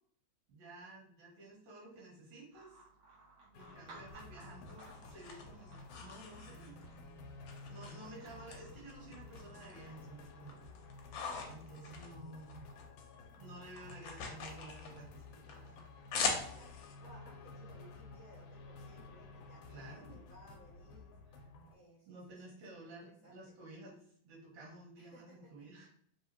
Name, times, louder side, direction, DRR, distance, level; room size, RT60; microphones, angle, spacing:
voice 1, 0.5-2.8 3.6-6.8 7.7-10.6 11.1-12.5 13.4-15.9 19.7-20.2 21.3-21.4 22.1-25.9, right 2 dB, 80° right, -3 dB, 2.8 m, -53 dB
sound 1, 2.5-10.4, right 3 dB, 55° right, 1.6 m, -61 dB
sound 2, 3.5-21.7, left 3 dB, 90° left, 2.1 m, -53 dB
sound 3, 4.1-7.0 7.5-8.6 8.9-9.9 10.3-12.9 13.1-16.9, left 5 dB, 70° left, 1.6 m, -42 dB
voice 2, 16.2-21.1 21.7-23.5 25.1-25.7, right 1 dB, 25° right, -6 dB, 0.9 m, -60 dB
5.3 x 3.1 x 2.9 m, 0.64 s
omnidirectional pair, 3.3 m